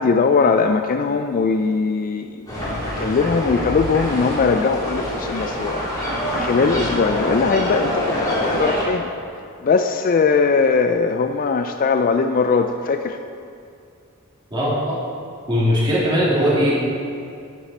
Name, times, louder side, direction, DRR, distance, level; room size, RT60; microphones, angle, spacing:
voice 1, 0.0-5.8 6.3-9.1 9.6-13.2, left 4 dB, 40° left, 7 dB, 0.3 m, -20 dB
sound 1, 2.5-8.8, equal, 15° left, 2.2 m, -25 dB
voice 2, 14.5-15.0 15.5-16.9, equal, 20° right, -7 dB, 2.6 m, -19 dB
9.0 x 9.0 x 4.2 m, 2.5 s
head